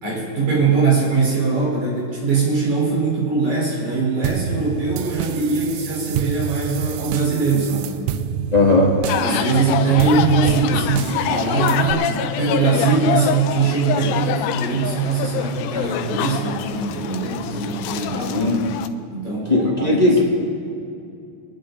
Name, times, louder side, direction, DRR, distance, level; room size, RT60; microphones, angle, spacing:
voice 1, 0.0-8.1 9.0-18.5 19.1-20.2, right 4 dB, 55° right, -5 dB, 5.6 m, -21 dB
sound 1, 4.2-11.9, right 9 dB, 80° right, 1.8 m, -28 dB
voice 2, 8.5-9.0 18.3-18.6 19.5-20.2, left 2 dB, 25° left, -4 dB, 0.9 m, -16 dB
sound 2, 9.1-18.9, left 10 dB, 90° left, 2.4 m, -26 dB
23.5 x 10.5 x 4.0 m, 2.6 s
omnidirectional pair, 4.1 m